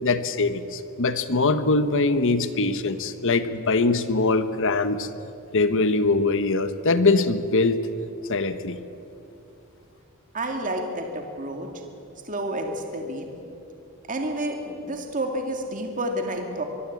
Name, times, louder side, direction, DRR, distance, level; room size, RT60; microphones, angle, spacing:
voice 1, 0.0-5.1 5.5-7.8 8.3-8.8, left 3 dB, 60° left, 11 dB, 1.2 m, -22 dB
voice 2, 10.3-11.7 12.3-13.3 14.1-16.6, right 1 dB, 35° right, 3 dB, 2.3 m, -29 dB
24.0 x 21.5 x 8.5 m, 2.7 s
head